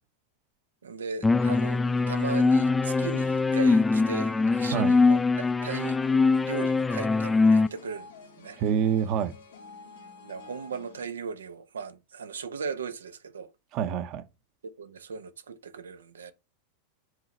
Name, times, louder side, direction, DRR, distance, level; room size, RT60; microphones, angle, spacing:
voice 1, 0.8-6.0 6.4-8.1 8.4-8.6 10.2-13.5 14.6-16.3, right 5 dB, 85° right, 0.8 m, -37 dB
sound 1, 1.2-7.7, left 3 dB, 15° left, 0.4 m, -23 dB
sound 2, 1.3-11.0, left 5 dB, 85° left, 1.5 m, -50 dB
voice 2, 8.6-9.3 13.7-14.2, right 8 dB, 45° right, 0.9 m, -26 dB
7.8 x 3.9 x 3.1 m
hypercardioid pair, 100°, 0 cm